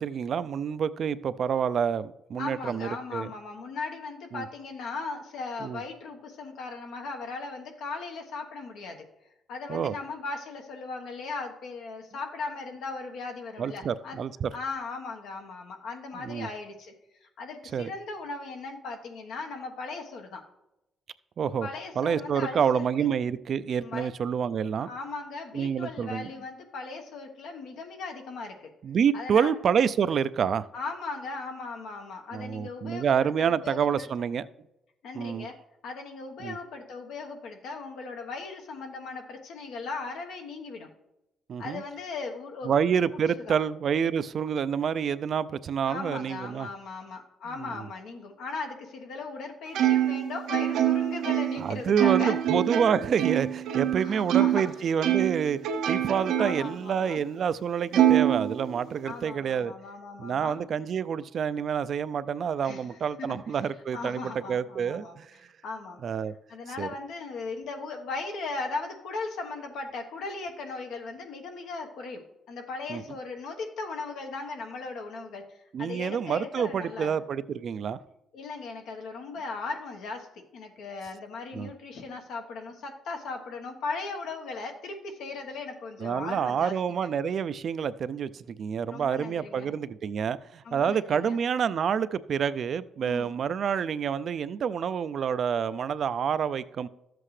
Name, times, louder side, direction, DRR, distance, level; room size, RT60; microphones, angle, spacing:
voice 1, 0.0-3.3 4.3-4.5 5.6-5.8 9.7-9.9 13.6-14.5 16.1-16.5 17.7-17.9 21.4-21.7 22.0-24.9 25.5-26.3 28.8-30.7 32.3-34.5 35.2-35.5 36.4-36.6 41.5-41.8 42.6-46.7 47.6-47.9 51.6-55.6 55.9-59.7 60.2-65.3 66.0-66.3 66.8-66.9 72.9-73.0 75.7-78.0 81.5-81.7 86.0-96.9, right 7 dB, 60° right, 15 dB, 0.4 m, -28 dB
voice 2, 2.3-9.0 9.5-14.2 14.5-16.9 17.2-20.4 21.6-23.1 23.8-24.1 24.8-28.7 29.1-29.5 30.7-34.1 35.0-35.6 35.8-40.9 41.6-43.6 45.8-52.4 54.0-54.6 56.4-57.2 59.0-60.6 62.6-63.4 63.9-65.2 65.6-66.0 66.5-77.1 78.3-87.1 88.9-89.7 90.6-91.4 93.0-93.3, left 4 dB, 80° left, 3 dB, 1.2 m, -38 dB
Plucked string instrument, 49.7-54.7 55.0-56.7 57.2-57.3 57.9-59.1, right 11 dB, 85° right, 0.7 m, -25 dB
12.5 x 7.7 x 3.2 m, 0.91 s
cardioid pair, 90°, 0 cm